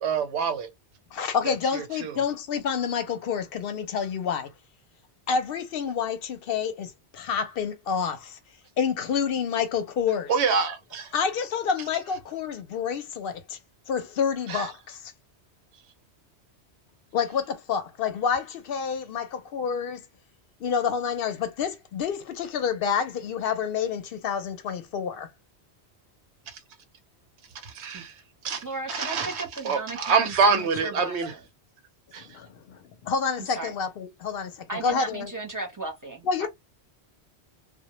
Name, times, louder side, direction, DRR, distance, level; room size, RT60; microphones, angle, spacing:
voice 1, 0.0-0.7 1.5-2.1 10.3-11.1 14.5-14.7 27.6-28.1 28.4-31.3 32.1-32.3, right 5 dB, 85° right, 0.9 m, -26 dB
voice 2, 1.1-4.5 5.3-8.4 8.8-10.3 11.1-13.6 13.9-15.1 17.1-20.0 20.6-25.3 28.9-29.1 32.2-35.3 36.2-36.5, left 6 dB, 65° left, 0.7 m, -28 dB
voice 3, 28.6-31.4 33.4-33.7 34.7-36.5, right 2 dB, 20° right, 0.6 m, -35 dB
2.1 x 2.1 x 2.9 m
omnidirectional pair, 1.1 m